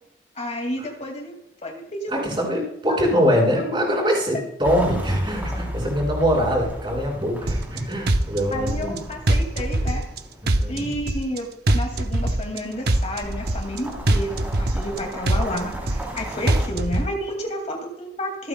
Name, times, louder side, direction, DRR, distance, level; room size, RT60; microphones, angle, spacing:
voice 1, 0.4-1.3 1.6-2.2 2.9-3.1 8.5-10.0 10.7-11.5 11.7-18.5, equal, 40° left, 2 dB, 2.2 m, -30 dB
voice 2, 2.1-8.9 10.4-10.9, equal, 30° right, -2 dB, 5.3 m, -23 dB
sound 1, 4.6-11.1 12.2-16.7, equal, 10° right, 3.2 m, -35 dB
sound 2, 7.5-7.8 8.1-9.0 9.3-10.2 10.5-11.4 11.7-12.6 12.9-13.8 14.1-15.0 15.3-16.2 16.5-17.1, right 1 dB, 60° right, 0.9 m, -22 dB
26.5 x 9.1 x 2.2 m, 0.83 s
head